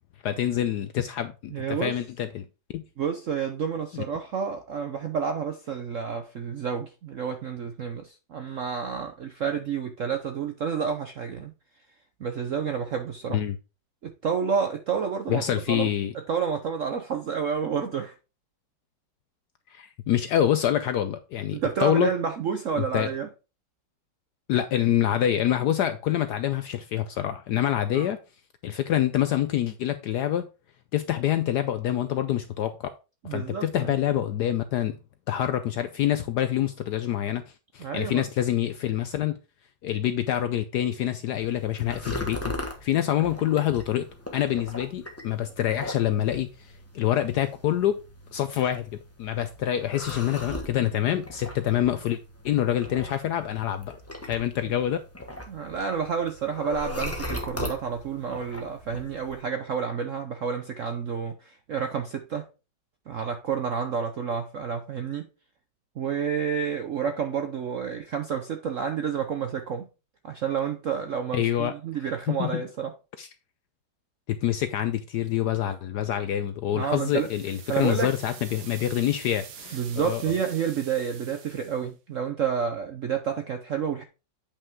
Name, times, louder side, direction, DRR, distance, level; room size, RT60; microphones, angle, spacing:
voice 1, 0.2-2.4 2.7-2.8 3.9-4.0 13.3-13.6 15.3-16.1 19.7-22.1 22.8-23.1 24.5-28.2 28.6-30.5 30.9-32.9 33.2-35.0 35.3-37.4 37.7-39.4 39.8-42.5 42.8-44.1 44.3-48.0 48.3-52.2 52.4-54.0 54.2-55.0 71.3-71.7 72.3-72.6 73.2-73.3 74.3-80.2, left 11 dB, 75° left, 0.9 m, -26 dB
voice 2, 1.5-1.9 3.0-11.5 12.2-13.4 14.0-15.9 16.3-18.1 21.5-23.3 27.9-28.1 33.2-33.9 37.8-38.3 55.5-62.5 63.1-65.2 66.0-69.9 70.2-72.9 76.7-77.3 77.7-78.1 79.7-84.0, right 7 dB, 65° right, 0.7 m, -29 dB
sound 1, 41.3-59.4, left 1 dB, 10° left, 1.1 m, -39 dB
sound 2, 76.8-81.9, right 8 dB, 85° right, 1.9 m, -46 dB
8.5 x 5.6 x 3.6 m
omnidirectional pair, 2.2 m